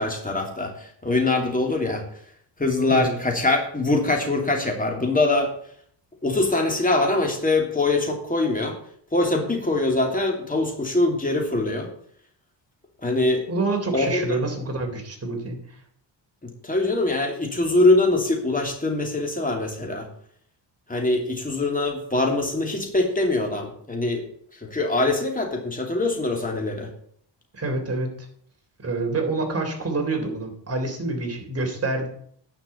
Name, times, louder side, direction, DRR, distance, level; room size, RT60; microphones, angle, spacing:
voice 1, 0.0-2.0 2.6-5.5 6.2-8.8 9.1-11.9 13.0-13.4 13.9-14.4 16.4-20.1 20.9-24.3 24.6-26.9, left 2 dB, 20° left, 2 dB, 2.9 m, -23 dB
voice 2, 13.5-15.8 27.5-28.1 28.8-32.1, right 3 dB, 30° right, 2 dB, 3.4 m, -27 dB
10.5 x 5.9 x 8.4 m, 0.63 s
cardioid pair, 110°, 45 cm